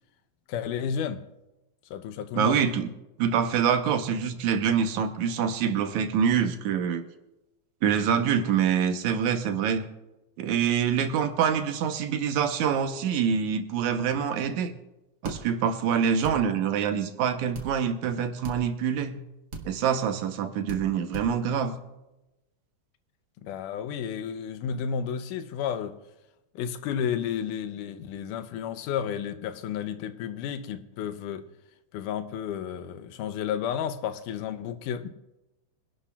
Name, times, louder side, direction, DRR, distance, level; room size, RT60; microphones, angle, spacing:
voice 1, 0.5-1.2 1.9-2.6 23.4-26.0 26.6-31.5 31.9-35.1, left 8 dB, 90° left, 2.3 m, -32 dB
voice 2, 2.4-2.9 3.2-7.0 7.8-9.9 10.4-14.8 15.2-19.2 19.7-21.8, right 7 dB, 75° right, 2.2 m, -25 dB
sound 1, 15.2-15.4 16.2-16.4 17.5-17.7 18.4-18.6 19.5-19.7 20.7-20.8 21.1-21.3, right 3 dB, 45° right, 1.4 m, -35 dB
25.0 x 11.5 x 2.3 m
omnidirectional pair, 3.6 m